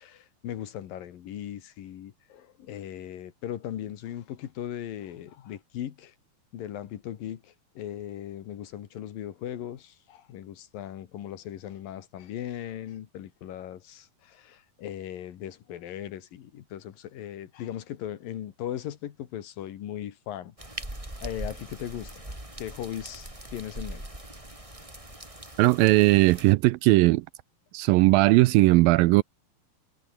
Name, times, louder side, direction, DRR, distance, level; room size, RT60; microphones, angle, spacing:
voice 1, 0.0-6.1 6.5-20.5 21.2-22.1 22.6-24.0, left 11 dB, 70° left, 3.3 m, -38 dB
sound 1, 20.6-26.5, right 1 dB, 10° right, 4.1 m, -41 dB
voice 2, 25.6-27.2 27.7-29.2, right 20 dB, 80° right, 2.1 m, -19 dB
omnidirectional pair, 4.4 m